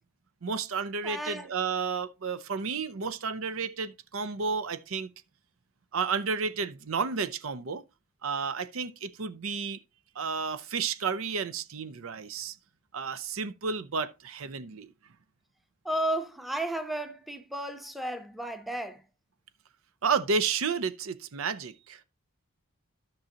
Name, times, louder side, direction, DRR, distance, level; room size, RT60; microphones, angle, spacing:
voice 1, 0.4-5.1 5.9-7.8 8.2-9.8 10.1-12.6 12.9-14.9 20.0-22.0, right 5 dB, 70° right, 0.6 m, -31 dB
voice 2, 1.0-1.5 15.8-19.0, right 1 dB, ahead, 0.8 m, -33 dB
13.0 x 6.2 x 2.9 m
head